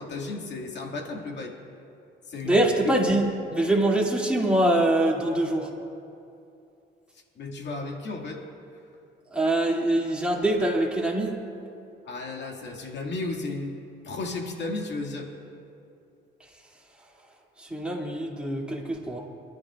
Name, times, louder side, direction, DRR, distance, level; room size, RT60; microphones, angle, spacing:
voice 1, 0.0-1.5 2.3-2.6 2.8-2.9 7.4-8.4 12.1-13.7 14.0-15.3, left 3 dB, 60° left, 0 dB, 2.2 m, -33 dB
voice 2, 2.4-5.7 9.3-11.4 17.6-19.2, right 1 dB, 5° right, -4 dB, 2.6 m, -24 dB
28.5 x 12.0 x 2.5 m, 2.7 s
cardioid pair, 90°, 20 cm